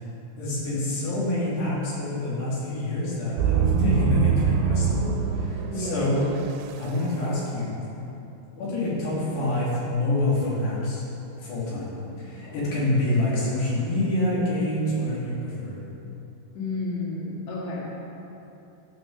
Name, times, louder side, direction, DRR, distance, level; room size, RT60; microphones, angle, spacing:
voice 1, 0.4-6.2 6.8-7.7 8.5-11.0 11.4-11.9 12.2-15.7, left 1 dB, 85° left, -7 dB, 4.9 m, -27 dB
sound 1, 3.4-6.6, right 7 dB, 85° right, 2.5 m, -24 dB
voice 2, 3.6-4.0 5.7-6.1 12.4-12.7 16.5-17.9, left 3 dB, 55° left, -4 dB, 2.8 m, -31 dB
13.5 x 6.0 x 6.8 m, 2.9 s
omnidirectional pair, 4.7 m